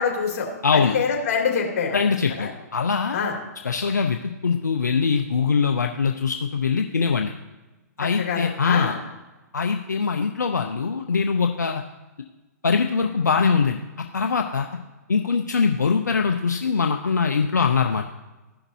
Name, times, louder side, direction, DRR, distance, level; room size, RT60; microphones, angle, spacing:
voice 1, 0.0-2.0 2.4-2.5 3.1-3.3 8.2-8.9, left 6 dB, 55° left, -1 dB, 2.7 m, -25 dB
voice 2, 0.6-1.0 1.9-3.2 3.6-7.3 8.0-9.0 9.5-11.8 12.6-13.8 14.1-14.7 15.1-18.0, left 5 dB, 90° left, 4 dB, 0.6 m, -22 dB
15.5 x 5.9 x 2.7 m, 1.1 s
hypercardioid pair, 125°, 9 cm